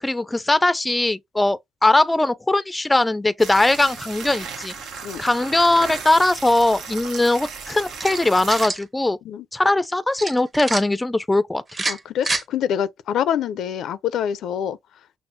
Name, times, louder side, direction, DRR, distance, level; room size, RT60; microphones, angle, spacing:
voice 1, 0.0-4.7 5.2-9.2 9.5-11.6, left 2 dB, 15° left, 0.4 m, -20 dB
sound 1, 3.4-8.7, right 5 dB, 85° right, 1.0 m, -35 dB
sound 2, 7.9-8.8 10.2-10.8 11.7-12.4, right 3 dB, 30° right, 1.0 m, -27 dB
voice 2, 11.9-14.8, left 9 dB, 75° left, 0.4 m, -25 dB
6.1 x 2.0 x 2.7 m
cardioid pair, 90°, 0 cm